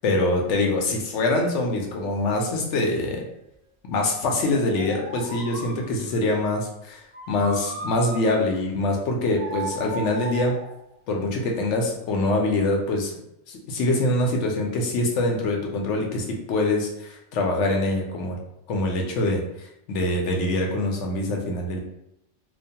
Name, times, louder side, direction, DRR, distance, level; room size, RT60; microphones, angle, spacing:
voice 1, 0.0-3.2 3.9-10.6 11.1-13.1 13.5-18.4 18.7-21.8, left 2 dB, 80° left, 1 dB, 0.9 m, -24 dB
sound 1, 0.6-0.7 2.0-3.6 4.3-6.2 7.1-8.7 9.4-10.8 11.7-12.0, right 2 dB, 40° right, 0.5 m, -37 dB
2.4 x 2.2 x 2.7 m, 0.81 s
omnidirectional pair, 1.2 m